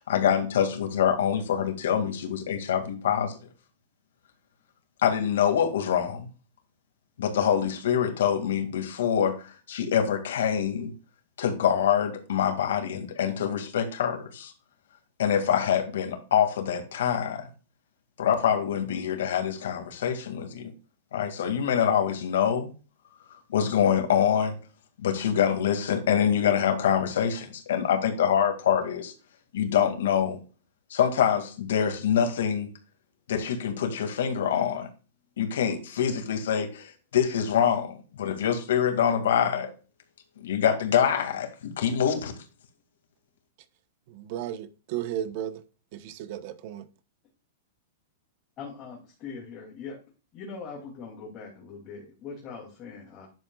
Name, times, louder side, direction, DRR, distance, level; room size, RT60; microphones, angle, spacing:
voice 1, 0.0-3.4 5.0-6.3 7.2-10.9 11.4-14.5 15.2-17.5 18.2-20.7 21.1-22.7 23.5-24.5 25.0-29.1 29.5-30.4 30.9-32.7 33.3-34.9 35.4-39.7 40.4-42.3, left 8 dB, 80° left, 2.1 m, -25 dB
voice 2, 44.1-45.6 45.9-46.9, right 11 dB, 45° right, 1.0 m, -34 dB
voice 3, 48.6-50.0 50.3-53.3, left 5 dB, 30° left, 2.7 m, -41 dB
10.5 x 7.4 x 2.4 m
supercardioid pair, 160°, 0 cm